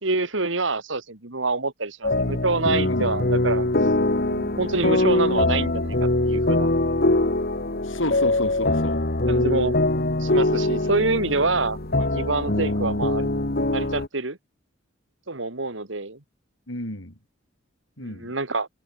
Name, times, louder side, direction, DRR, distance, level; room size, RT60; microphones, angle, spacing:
voice 1, 0.0-3.7 4.2-6.7 9.3-9.8 10.2-13.3 13.7-14.4 15.3-16.2 18.0-18.7, right 3 dB, 70° right, 2.5 m, -26 dB
sound 1, 2.0-14.1, left 2 dB, 50° left, 2.1 m, -23 dB
voice 2, 7.9-9.0 16.7-17.1 18.0-18.3, left 1 dB, 80° left, 7.2 m, -31 dB
head